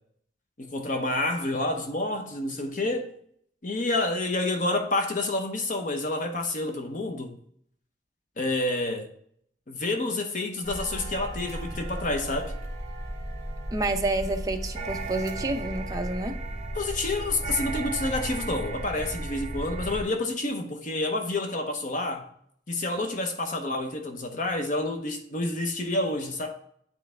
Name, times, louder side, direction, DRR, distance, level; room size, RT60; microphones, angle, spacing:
voice 1, 0.6-3.1 3.6-7.4 8.4-9.1 9.7-12.5 16.8-22.2 22.7-26.5, left 2 dB, 45° left, 0.8 m, -29 dB
sound 1, 10.6-20.0, right 1 dB, 40° right, 1.2 m, -34 dB
voice 2, 13.7-16.4, right 2 dB, 20° right, 0.5 m, -29 dB
8.8 x 3.2 x 3.3 m
head